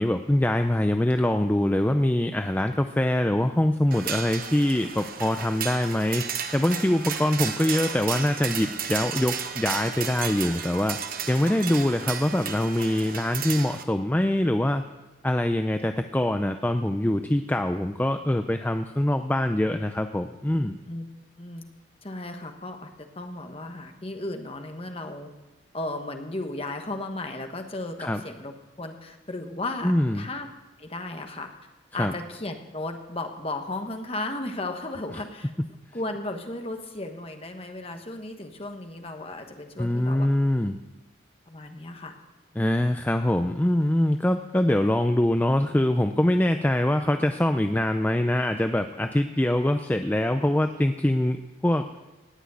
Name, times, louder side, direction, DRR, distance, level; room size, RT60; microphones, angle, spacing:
voice 1, 0.0-6.2 6.5-11.0 11.3-14.8 15.2-20.8 28.0-28.2 29.8-30.3 31.9-32.1 39.8-40.8 42.6-51.9, left 1 dB, 10° left, 7 dB, 0.4 m, -24 dB
sound 1, 3.9-13.8, right 7 dB, 45° right, 1.0 m, -33 dB
voice 2, 22.0-22.9 23.1-25.3 25.7-28.5 28.8-30.5 30.8-31.5 31.9-35.5 35.9-40.3 41.5-42.1, left 2 dB, 30° left, 5 dB, 1.3 m, -35 dB
18.0 x 6.2 x 9.3 m, 1.1 s
head